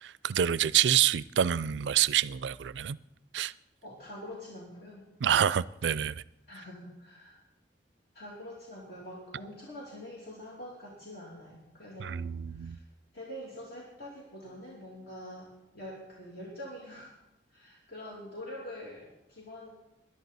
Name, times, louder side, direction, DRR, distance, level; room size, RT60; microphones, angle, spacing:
voice 1, 0.0-3.0 3.3-3.5 5.2-6.2 12.0-12.8, right 10 dB, 70° right, 0.4 m, -27 dB
voice 2, 3.8-5.1 6.5-7.4 8.1-12.2 12.5-12.8 13.1-17.2 17.5-19.7, left 1 dB, 60° left, 2.8 m, -45 dB
20.0 x 11.0 x 4.1 m
head